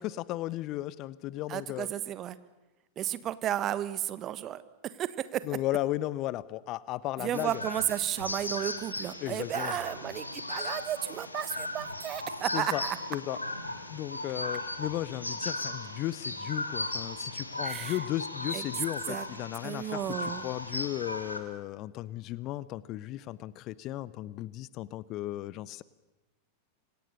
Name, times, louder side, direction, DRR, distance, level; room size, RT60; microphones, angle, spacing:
voice 1, 0.0-1.9 5.4-7.6 9.2-9.8 12.5-12.8 13.1-13.4 13.7-25.8, left 15 dB, 40° left, 20 dB, 0.8 m, -35 dB
voice 2, 1.5-2.4 3.0-4.6 5.0-5.4 7.2-13.0 17.6-18.0 18.5-18.6 19.1-19.2 19.6-20.5, right 11 dB, 30° right, 15 dB, 1.3 m, -33 dB
sound 1, 7.3-21.4, left 2 dB, 85° left, 2.6 m, -37 dB
27.0 x 25.5 x 6.7 m, 1.1 s
figure-of-eight pair, 90°, 0 cm